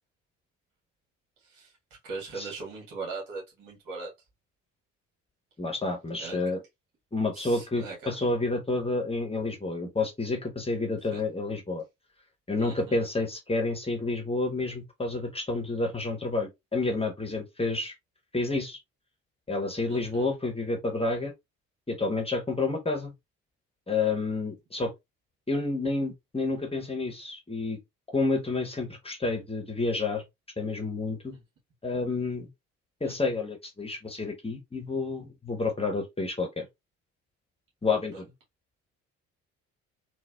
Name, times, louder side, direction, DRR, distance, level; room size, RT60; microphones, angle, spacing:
voice 1, 1.4-1.7 2.0-4.1 6.2-6.4 7.3-8.1 11.1-11.2 12.6-13.0 19.9-20.3 33.0-33.2 38.1-38.2, right 4 dB, 60° right, 1.9 m, -40 dB
voice 2, 5.6-6.6 7.1-11.8 12.5-17.9 18.3-18.8 19.5-21.3 21.9-23.1 23.9-24.9 25.5-27.8 28.1-30.2 30.6-31.3 31.8-32.5 33.0-36.6 37.8-38.2, left 3 dB, 15° left, 1.1 m, -29 dB
4.0 x 2.4 x 2.4 m
figure-of-eight pair, 50°, 38 cm